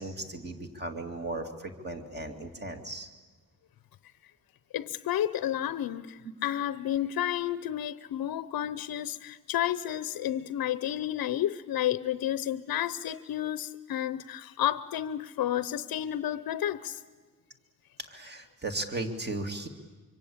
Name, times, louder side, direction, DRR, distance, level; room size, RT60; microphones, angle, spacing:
voice 1, 0.0-3.1 18.1-19.7, right 2 dB, 30° right, 5 dB, 2.4 m, -36 dB
voice 2, 4.7-17.0, left 11 dB, 75° left, 14 dB, 0.8 m, -31 dB
25.5 x 24.0 x 8.6 m, 1.4 s
wide cardioid pair, 165°, 35 cm